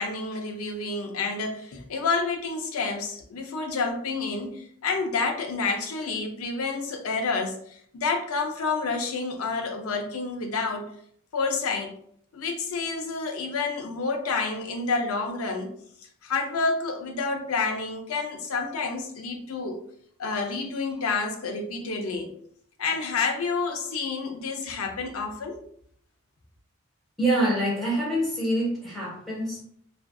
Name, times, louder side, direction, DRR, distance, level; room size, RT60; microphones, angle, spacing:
voice 1, 0.0-10.9 11.3-11.9 12.3-15.7 16.2-19.8 20.2-22.3 22.8-25.6, left 4 dB, 90° left, 4 dB, 0.5 m, -29 dB
voice 2, 27.2-29.6, right 1 dB, ahead, -7 dB, 1.0 m, -25 dB
2.5 x 2.3 x 2.2 m, 0.63 s
head